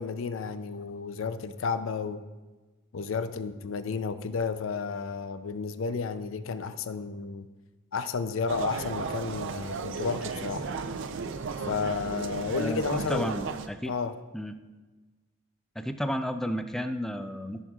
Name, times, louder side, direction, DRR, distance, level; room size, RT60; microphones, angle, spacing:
voice 1, 0.0-2.2 2.9-7.5 7.9-10.7 11.7-13.3 13.9-14.1, left 5 dB, 70° left, 11 dB, 0.5 m, -32 dB
sound 1, 8.5-13.7, right 5 dB, 60° right, 0.5 m, -35 dB
voice 2, 12.5-13.9 14.3-14.6 15.8-17.6, equal, ahead, 8 dB, 0.4 m, -32 dB
14.5 x 6.3 x 2.4 m, 1.2 s
head